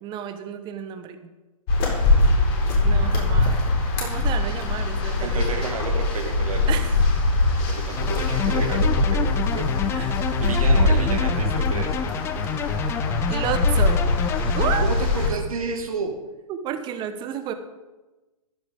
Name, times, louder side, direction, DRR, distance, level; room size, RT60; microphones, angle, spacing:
voice 1, 0.0-1.3 2.8-3.6 4.0-5.6 6.7-7.0 9.9-10.2 13.3-14.1 14.5-14.9 16.5-17.5, right 9 dB, 25° right, 9 dB, 1.2 m, -31 dB
sound 1, 1.7-15.3, left 2 dB, 40° left, 4.3 m, -22 dB
voice 2, 5.2-6.6 7.6-9.9 10.4-12.0 14.8-16.1, right 4 dB, 70° right, 1 dB, 2.1 m, -31 dB
sound 2, 8.0-14.8, left 8 dB, 15° left, 0.4 m, -29 dB
15.0 x 12.0 x 3.7 m, 1.1 s
figure-of-eight pair, 120°, 19 cm